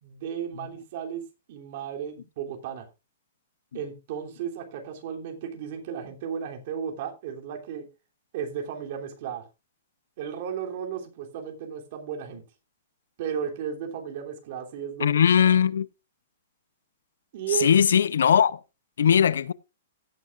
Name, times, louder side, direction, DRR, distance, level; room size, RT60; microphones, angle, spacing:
voice 1, 0.0-2.9 3.7-7.8 8.3-9.4 10.2-12.4 13.2-15.2 17.3-17.7, right 8 dB, 40° right, 3.1 m, -34 dB
voice 2, 15.0-15.9 17.6-18.6 19.0-19.5, left 8 dB, 85° left, 0.6 m, -19 dB
16.5 x 9.2 x 2.5 m
hypercardioid pair, 170°, 0 cm